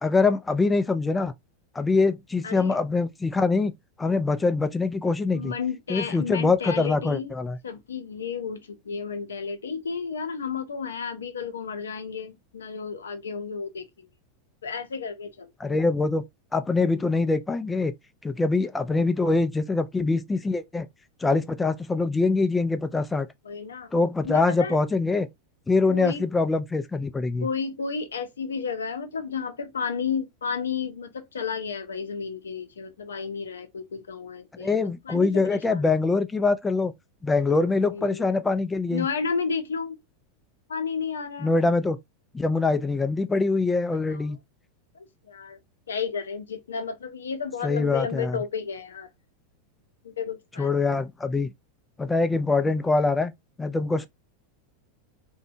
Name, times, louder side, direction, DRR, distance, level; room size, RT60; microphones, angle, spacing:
voice 1, 0.0-1.3 1.7-3.7 4.0-5.5 5.9-7.6 15.6-16.2 16.5-17.9 18.2-20.9 21.2-23.3 23.9-25.3 25.7-27.5 34.6-36.9 37.2-39.1 41.4-42.0 42.3-44.4 47.6-48.4 50.6-51.5 52.0-53.3 53.6-54.1, left 3 dB, 15° left, 0.3 m, -24 dB
voice 2, 2.4-2.8 5.3-7.3 7.6-14.1 14.6-15.5 23.5-23.9 24.2-24.8 25.9-26.2 27.4-35.9 37.9-38.3 38.9-40.0 40.7-41.5 44.1-44.3 45.3-45.6 45.9-49.1 50.0-50.7, left 6 dB, 90° left, 0.5 m, -32 dB
2.6 x 2.1 x 2.6 m
hypercardioid pair, 105°, 0 cm